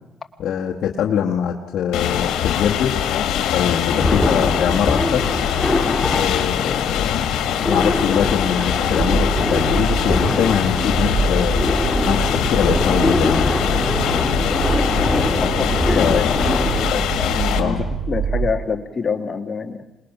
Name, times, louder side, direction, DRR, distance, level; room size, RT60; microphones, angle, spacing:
voice 1, 0.4-3.0 3.5-5.3 6.1-7.1 7.6-11.6 12.0-13.5 15.9-16.6 17.6-17.8, left 8 dB, 70° left, -1 dB, 1.5 m, -23 dB
sound 1, 1.9-17.6, left 10 dB, 90° left, 1.9 m, -23 dB
sound 2, 3.9-16.9, left 2 dB, 15° left, 1.9 m, -23 dB
sound 3, 8.9-18.5, right 5 dB, 70° right, 2.8 m, -26 dB
voice 2, 15.4-16.3 16.9-19.8, left 5 dB, 35° left, 7 dB, 1.7 m, -26 dB
26.5 x 20.0 x 6.0 m, 1.0 s
cardioid pair, 90°, 0 cm